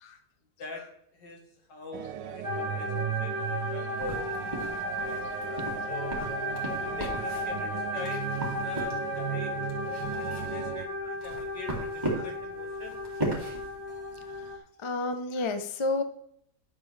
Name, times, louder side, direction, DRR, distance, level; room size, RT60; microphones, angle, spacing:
voice 1, 1.1-4.3 5.9-8.3 8.6-13.0, left 3 dB, 90° left, 3 dB, 2.2 m, -43 dB
sound 1, 1.9-10.9, right 11 dB, 90° right, 1.3 m, -37 dB
sound 2, 2.4-14.6, left 1 dB, 25° left, 1.1 m, -35 dB
sound 3, 4.0-14.5, right 1 dB, 25° right, 2.6 m, -38 dB
voice 2, 14.8-16.0, left 2 dB, 45° left, 7 dB, 0.3 m, -30 dB
11.0 x 6.0 x 3.3 m, 0.70 s
omnidirectional pair, 1.9 m